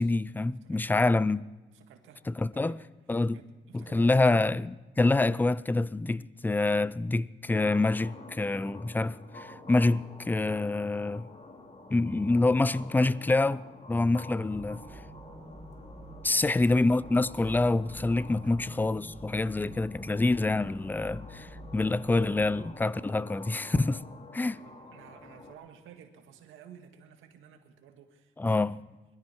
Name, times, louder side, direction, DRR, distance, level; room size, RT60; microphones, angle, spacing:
voice 1, 0.0-1.4 2.3-2.8 3.1-3.4 3.7-11.3 11.9-14.8 16.2-24.0 24.3-24.6 28.4-28.7, left 2 dB, 10° left, 0.4 m, -26 dB
voice 2, 0.6-1.0 1.7-2.3 2.5-2.8 3.3-4.5 16.3-16.6 24.6-28.9, right 8 dB, 85° right, 1.9 m, -53 dB
sound 1, 7.5-25.5, left 2 dB, 35° left, 2.7 m, -49 dB
sound 2, 14.5-22.7, right 1 dB, 30° right, 2.5 m, -48 dB
21.0 x 13.0 x 4.5 m
cardioid pair, 90°, 20 cm